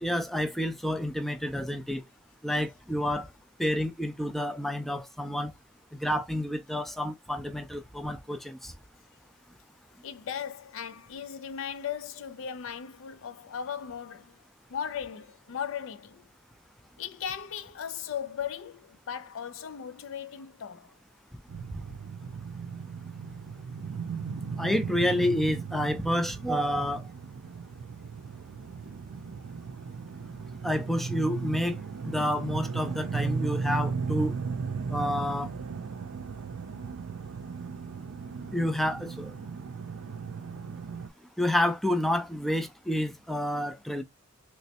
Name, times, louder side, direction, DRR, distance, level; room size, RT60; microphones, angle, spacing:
voice 1, 0.0-2.0 2.4-3.3 3.6-5.5 5.9-8.7 24.6-27.1 30.6-31.8 32.0-34.3 34.9-35.5 38.5-39.3 41.4-44.0, left 1 dB, ahead, 0.4 m, -29 dB
voice 2, 10.0-14.4 14.7-16.3 17.0-21.0, left 8 dB, 70° left, 0.4 m, -37 dB
sound 1, 21.5-41.1, right 5 dB, 80° right, 0.5 m, -36 dB
3.1 x 3.1 x 2.8 m
head